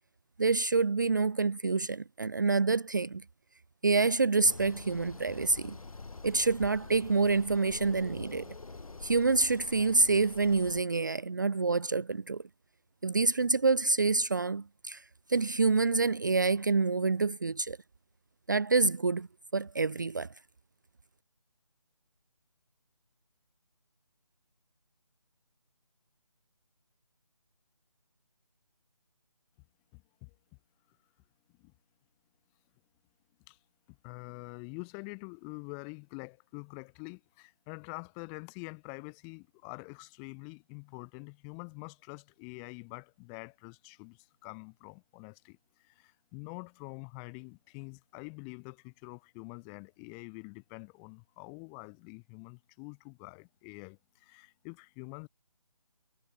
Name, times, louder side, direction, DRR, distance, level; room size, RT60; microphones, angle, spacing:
voice 1, 0.4-3.2 3.8-5.8 6.2-8.5 9.0-12.4 13.0-15.0 15.3-17.8 18.5-19.3 19.5-20.3, right 4 dB, 30° right, 0.7 m, -27 dB
sound 1, 4.4-10.8, left 3 dB, 70° left, 3.4 m, -46 dB
voice 2, 29.9-30.3 31.6-31.7 33.5-33.6 34.0-55.3, left 40 dB or more, 5° left, 1.6 m, -46 dB
figure-of-eight pair, 175°, 19 cm